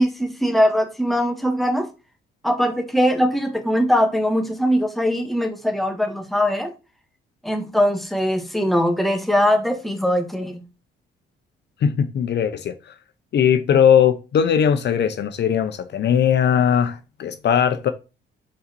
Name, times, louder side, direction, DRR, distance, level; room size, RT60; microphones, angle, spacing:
voice 1, 0.0-1.9 2.4-6.7 7.4-10.6, equal, ahead, 1.7 m, -21 dB
voice 2, 11.8-12.7 13.3-17.9, left 8 dB, 60° left, 0.8 m, -19 dB
5.5 x 4.1 x 5.2 m
cardioid pair, 90°, 20 cm